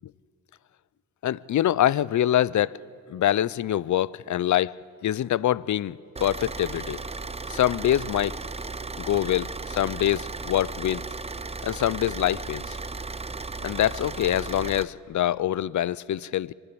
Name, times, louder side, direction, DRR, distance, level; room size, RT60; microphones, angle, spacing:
voice 1, 1.2-2.8 3.1-7.0 7.5-8.4 9.0-11.1 11.6-12.8 13.6-16.5, left 12 dB, 50° left, 0.5 m, -25 dB
Car / Idling, 6.2-14.8, right 3 dB, 15° right, 0.6 m, -35 dB
24.5 x 12.0 x 10.0 m
cardioid pair, 70°, 38 cm